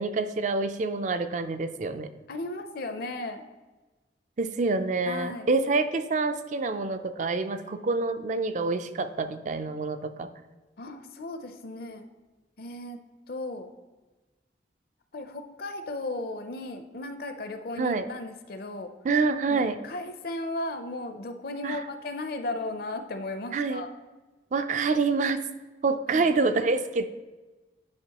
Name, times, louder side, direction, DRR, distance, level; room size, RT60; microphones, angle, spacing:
voice 1, 0.0-2.1 4.4-10.3 17.8-18.1 19.0-19.8 21.6-21.8 23.5-23.8 24.5-25.4 25.8-27.1, right 3 dB, 45° right, 10 dB, 0.4 m, -27 dB
voice 2, 2.3-3.4 5.0-5.5 10.8-12.1 12.6-13.0 13.3-13.7 15.1-18.9 19.5-23.9 26.1-26.3, left 2 dB, 55° left, 8 dB, 0.5 m, -35 dB
9.7 x 5.2 x 2.9 m, 1.2 s
head